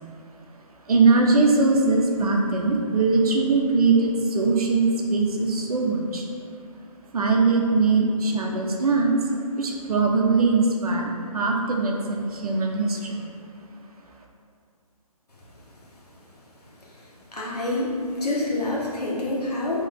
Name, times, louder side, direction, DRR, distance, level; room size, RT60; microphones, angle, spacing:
voice 1, 0.9-6.3 7.1-9.2 9.5-13.2, right 3 dB, 70° right, 0 dB, 0.8 m, -21 dB
voice 2, 17.3-19.9, left 2 dB, 90° left, -5 dB, 1.3 m, -27 dB
4.0 x 3.1 x 4.2 m, 2.2 s
hypercardioid pair, 150°, 20 cm